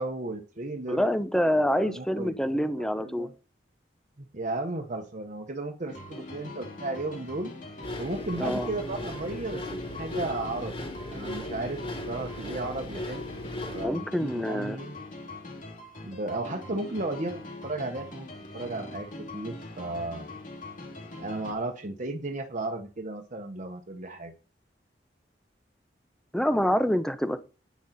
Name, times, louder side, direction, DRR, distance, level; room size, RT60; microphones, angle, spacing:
voice 1, 0.0-1.0 1.6-3.3 4.3-7.5 8.0-13.4 13.7-15.0 16.0-18.3 18.5-19.1 19.3-20.3 21.2-24.3, right 2 dB, 45° right, 1.2 m, -34 dB
voice 2, 0.9-3.3 8.4-8.7 13.8-14.8 26.3-27.4, equal, 5° left, 0.9 m, -26 dB
sound 1, 5.9-21.5, left 2 dB, 50° left, 3.1 m, -42 dB
sound 2, 7.8-13.9, left 1 dB, 35° left, 3.9 m, -37 dB
10.5 x 9.5 x 4.3 m
head